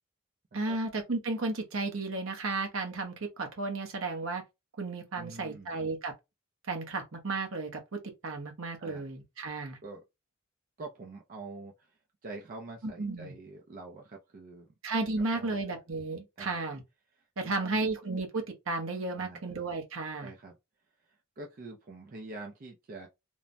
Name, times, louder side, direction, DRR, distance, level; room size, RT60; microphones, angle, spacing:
voice 1, 0.5-4.4 4.8-6.1 6.7-9.8 12.8-13.3 14.8-16.8 17.4-20.3, right 3 dB, 75° right, 0.8 m, -33 dB
voice 2, 5.1-5.8 8.8-9.1 9.8-10.0 10.8-14.7 15.3-15.8 16.4-16.6 17.4-17.8 19.1-19.5 20.2-20.6 21.1-23.1, right 3 dB, 40° right, 0.4 m, -46 dB
3.1 x 2.1 x 2.5 m
head